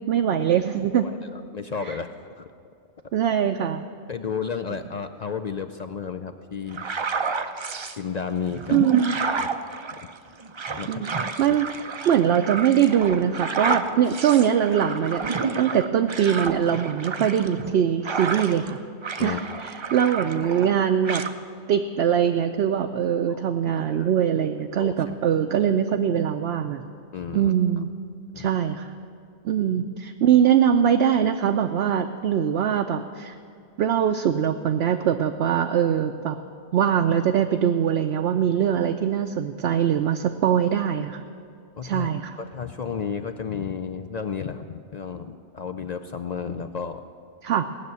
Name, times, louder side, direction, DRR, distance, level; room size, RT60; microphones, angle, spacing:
voice 1, 0.1-1.1 1.9-2.0 3.1-3.8 8.7-9.1 10.9-11.1 11.4-11.7 12.1-15.2 15.6-18.8 19.2-21.2 21.7-26.8 27.3-27.9 28.4-28.9 29.4-33.4 33.8-36.4 36.7-41.2 41.8-42.4 47.4-47.6, right 9 dB, 65° right, 5 dB, 0.8 m, -22 dB
voice 2, 0.9-2.5 4.1-6.9 7.9-8.8 9.4-9.5 10.8-11.0 11.4-11.6 13.7-14.0 19.2-19.4 23.3-23.5 23.7-24.1 24.8-25.1 27.1-27.5 28.3-28.5 41.8-47.0, left 6 dB, 55° left, 7 dB, 0.4 m, -32 dB
sound 1, 6.7-8.0 8.5-18.7 19.0-20.8 21.1-21.3, right 4 dB, 45° right, 0.4 m, -30 dB
18.0 x 6.7 x 9.2 m, 2.3 s
omnidirectional pair, 1.2 m